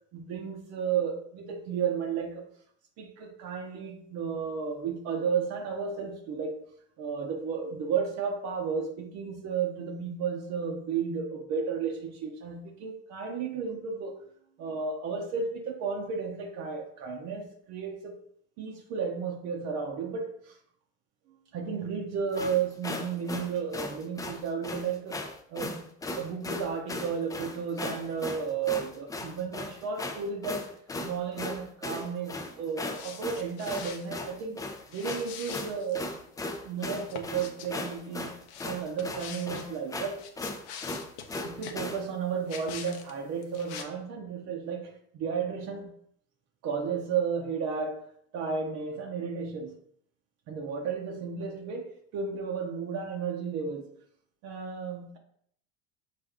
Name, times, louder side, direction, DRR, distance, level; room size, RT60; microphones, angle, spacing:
voice 1, 0.1-2.5 3.0-6.6 7.0-14.2 14.6-18.2 18.6-20.6 21.5-25.2 25.5-25.9 26.1-30.7 31.0-34.6 34.9-36.0 36.6-38.4 38.6-40.2 41.4-45.9 46.6-48.1 48.3-49.7 50.5-53.9 54.4-55.2, right 6 dB, 55° right, 0.7 m, -33 dB
sound 1, 22.3-42.0, left 2 dB, 10° left, 0.4 m, -37 dB
sound 2, 32.9-34.2 34.9-36.0 36.8-37.7 38.5-39.7 40.1-41.8 42.5-43.1 43.4-43.8, left 7 dB, 85° left, 0.7 m, -44 dB
4.9 x 2.6 x 3.5 m
supercardioid pair, 105°, 32 cm